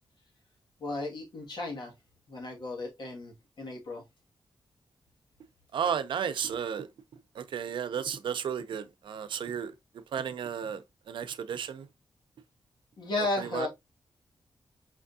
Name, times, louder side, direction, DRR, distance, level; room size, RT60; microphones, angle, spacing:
voice 1, 0.8-1.9 2.3-4.0 13.0-13.7, left 2 dB, 65° left, 1.8 m, -34 dB
voice 2, 5.7-6.9 7.4-9.7 10.1-10.8 11.1-11.9 13.4-13.7, right 8 dB, 85° right, 0.5 m, -33 dB
5.0 x 3.4 x 2.6 m
wide cardioid pair, 110°, 8 cm